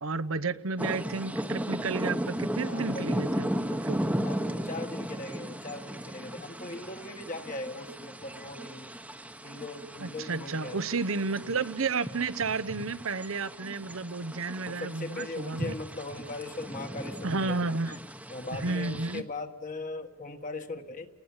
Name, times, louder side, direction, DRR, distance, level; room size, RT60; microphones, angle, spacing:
voice 1, 0.0-4.0 10.0-15.7 17.2-18.0 18.6-19.2, right 4 dB, 65° right, 17 dB, 0.9 m, -32 dB
sound 1, 0.8-19.2, equal, 5° right, 1.0 m, -36 dB
voice 2, 2.6-3.2 4.2-8.9 9.4-10.9 14.7-18.0 18.3-21.1, left 2 dB, 35° left, 5 dB, 1.5 m, -39 dB
30.0 x 19.5 x 7.3 m, 1.2 s
head